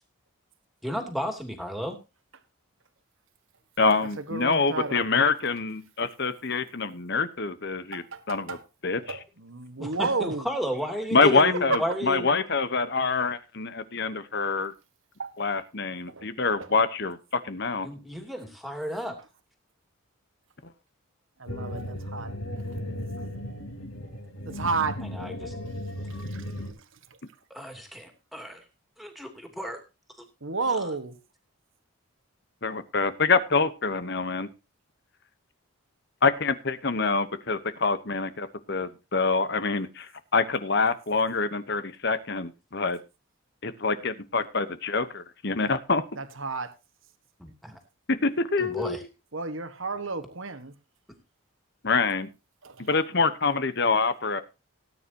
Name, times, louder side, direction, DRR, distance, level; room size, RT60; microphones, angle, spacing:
voice 1, 0.8-2.0 9.8-12.3 17.8-19.2 25.0-25.5 27.5-28.6 29.0-29.8 30.8-30.9 47.4-47.8 48.6-49.0, equal, ahead, 5 dB, 2.8 m, -33 dB
voice 2, 3.8-8.6 8.8-9.2 11.1-14.7 15.4-17.9 32.6-34.5 36.2-43.0 43.6-46.0 48.1-49.0 51.8-52.3 52.9-54.4, left 4 dB, 50° left, 12 dB, 1.1 m, -26 dB
voice 3, 4.3-5.0 7.9-8.6 9.0-10.5 11.7-11.8 15.2-15.3 16.1-16.3 16.6-16.7 21.4-22.3 24.4-25.0 26.2-26.5 30.4-31.2 46.2-46.7 49.3-50.7 52.6-52.9, right 3 dB, 65° right, 10 dB, 1.5 m, -32 dB
sound 1, 21.5-26.7, left 1 dB, 80° left, 4.1 m, -36 dB
18.5 x 9.6 x 2.9 m, 0.28 s
head